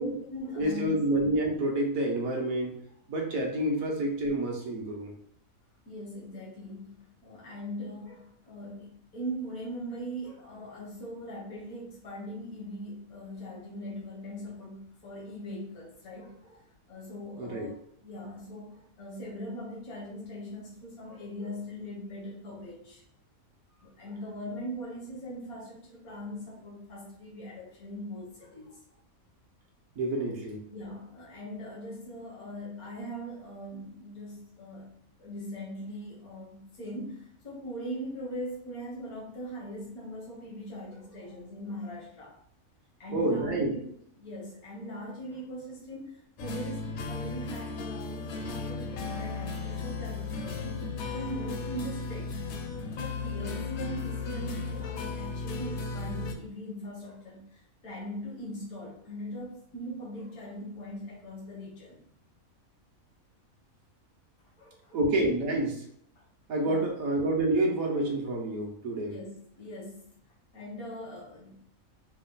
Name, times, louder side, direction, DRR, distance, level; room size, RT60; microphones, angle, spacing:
voice 1, 0.0-1.1 5.9-17.7 18.0-23.0 23.8-28.8 30.7-42.3 43.0-43.9 44.2-50.8 51.1-52.4 53.0-62.0 64.6-65.0 66.2-66.3 66.6-66.9 69.0-70.1 70.5-71.6, equal, 90° left, -4 dB, 1.7 m, -41 dB
voice 2, 0.6-2.7 3.1-5.1 17.4-17.7 30.0-30.6 43.1-43.7 64.9-65.8 66.5-69.1, right 1 dB, 75° right, 1 dB, 1.4 m, -28 dB
sound 1, 46.4-56.3, left 4 dB, 65° left, 0.8 m, -35 dB
5.1 x 2.2 x 3.9 m, 0.65 s
omnidirectional pair, 1.5 m